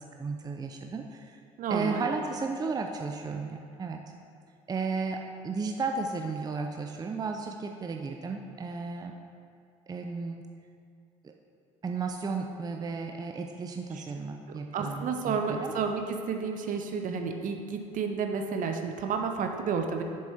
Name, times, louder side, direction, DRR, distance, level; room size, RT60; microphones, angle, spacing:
voice 1, 0.2-1.4 1.7-4.1 4.7-9.1 9.9-10.4 11.2-11.3 11.8-15.7, right 4 dB, 20° right, 3 dB, 0.5 m, -34 dB
voice 2, 1.6-2.0 13.9-14.0 14.5-20.0, right 5 dB, 50° right, 5 dB, 0.8 m, -31 dB
7.1 x 6.3 x 4.5 m, 2.3 s
hypercardioid pair, 60°, 18 cm